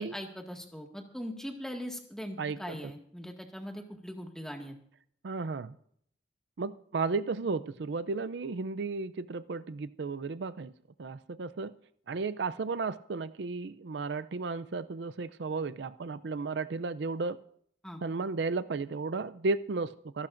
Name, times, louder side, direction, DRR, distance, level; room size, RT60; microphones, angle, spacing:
voice 1, 0.0-4.7 17.8-18.0, equal, 5° left, 2 dB, 1.8 m, -41 dB
voice 2, 2.4-2.8 5.2-5.7 6.6-10.7 11.0-11.7 12.1-17.4 18.0-20.3, right 4 dB, 70° right, 15 dB, 0.5 m, -34 dB
26.5 x 11.5 x 2.6 m, 0.64 s
head